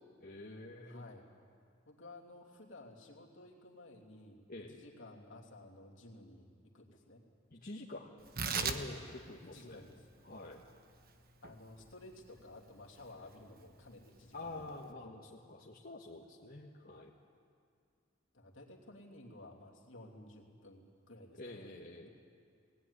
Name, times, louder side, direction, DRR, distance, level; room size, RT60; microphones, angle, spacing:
voice 1, 0.2-1.0 4.5-4.8 7.5-8.1 8.5-9.9 10.2-10.6 14.3-17.1 21.4-22.1, left 2 dB, 50° left, -3 dB, 1.6 m, -47 dB
voice 2, 0.8-1.3 1.9-4.4 4.7-7.2 8.7-8.9 9.5-9.9 11.4-14.7 15.0-15.1 18.3-21.7 22.0-22.1, left 2 dB, 70° left, -1 dB, 3.0 m, -54 dB
Tearing, 8.2-14.9, right 5 dB, 50° right, 1.2 m, -43 dB
20.0 x 17.5 x 9.9 m, 2.2 s
head